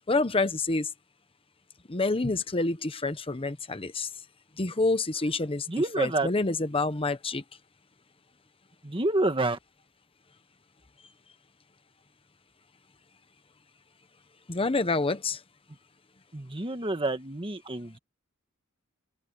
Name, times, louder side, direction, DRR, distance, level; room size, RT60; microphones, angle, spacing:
voice 1, 0.1-0.9 1.9-4.1 4.6-5.7 6.0-7.4 14.5-15.4, left 3 dB, 25° left, 0.9 m, -27 dB
voice 2, 5.7-6.3 8.8-9.6 16.3-18.0, right 2 dB, 25° right, 1.6 m, -28 dB
open air
head